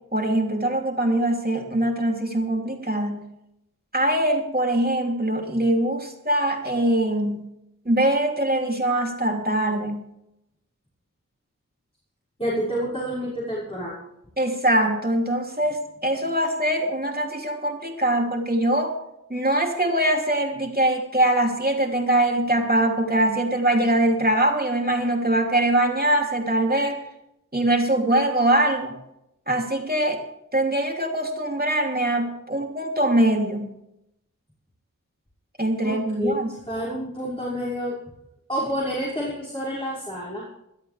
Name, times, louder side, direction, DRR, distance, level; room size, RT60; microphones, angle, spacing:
voice 1, 0.1-3.2 3.9-7.4 7.8-10.1 14.4-18.9 19.3-27.0 27.5-28.9 29.5-30.2 30.5-33.7 35.6-36.5, right 1 dB, 30° right, 1 dB, 3.2 m, -22 dB
voice 2, 12.4-14.1 35.8-38.0 38.5-40.5, equal, 15° left, -7 dB, 6.1 m, -29 dB
22.0 x 13.0 x 3.5 m, 0.83 s
wide cardioid pair, 45°, 32 cm